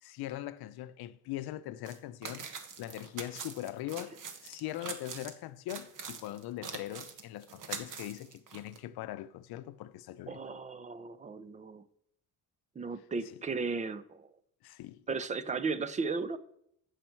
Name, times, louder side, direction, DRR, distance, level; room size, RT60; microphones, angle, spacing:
voice 1, 0.0-2.5 2.8-4.2 4.4-10.4 13.3-13.4 14.6-15.0, left 14 dB, 65° left, 0.7 m, -41 dB
sound 1, 1.8-5.3 5.7-8.8, right 6 dB, 50° right, 1.3 m, -44 dB
voice 2, 10.3-11.8 12.8-14.3 15.1-16.4, right 4 dB, 20° right, 0.5 m, -35 dB
15.0 x 6.6 x 4.5 m
cardioid pair, 140°, 40 cm